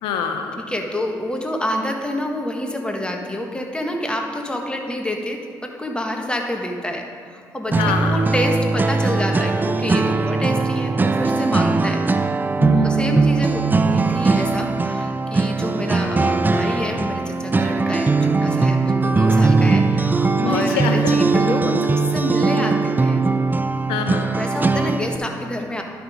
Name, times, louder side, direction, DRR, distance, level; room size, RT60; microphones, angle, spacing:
voice 1, 0.0-0.6 7.7-8.2 12.6-13.2 20.4-21.2 23.9-24.3, left 6 dB, 85° left, 5 dB, 0.7 m, -25 dB
voice 2, 0.6-12.0 12.8-23.2 24.4-25.8, left 1 dB, 10° left, 2 dB, 1.5 m, -27 dB
sound 1, 7.7-25.2, right 3 dB, 25° right, 0.5 m, -20 dB
11.0 x 5.8 x 5.0 m, 2.2 s
supercardioid pair, 60°, 8 cm